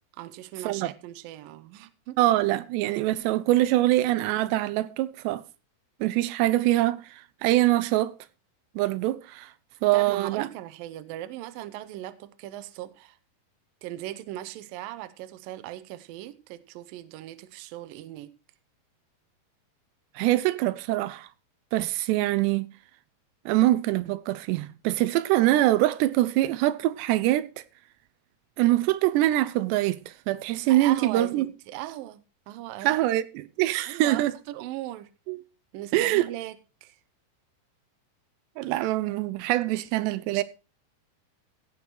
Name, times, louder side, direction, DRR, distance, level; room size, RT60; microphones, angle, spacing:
voice 1, 0.2-2.2 9.9-13.2 13.8-18.3 30.7-33.0 33.9-35.1 35.7-36.6 36.8-37.0 40.3-40.4, right 14 dB, 75° right, 2.2 m, -39 dB
voice 2, 2.2-5.4 6.0-8.1 8.8-9.5 9.8-10.5 20.2-21.3 21.7-22.7 23.5-27.5 28.6-31.5 32.8-34.3 35.3-35.4 35.9-36.3 38.6-40.4, right 15 dB, 90° right, 2.9 m, -24 dB
16.5 x 6.2 x 4.5 m
omnidirectional pair, 4.8 m